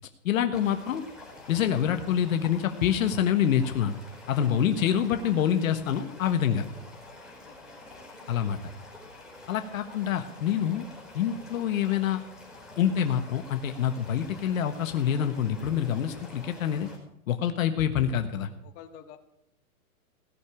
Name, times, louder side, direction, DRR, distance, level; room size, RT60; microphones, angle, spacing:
voice 1, 0.2-1.0 1.5-4.0 4.3-6.6 8.3-8.6 9.5-10.8 11.1-12.2 12.8-16.9 17.3-18.5, left 9 dB, 65° left, 8 dB, 1.4 m, -26 dB
sound 1, 0.5-17.0, left 2 dB, ahead, 4.7 m, -48 dB
voice 2, 4.5-4.9 7.4-7.6 18.6-19.2, left 9 dB, 30° left, 5 dB, 1.8 m, -48 dB
17.0 x 6.7 x 9.8 m, 0.77 s
hypercardioid pair, 145°, 44 cm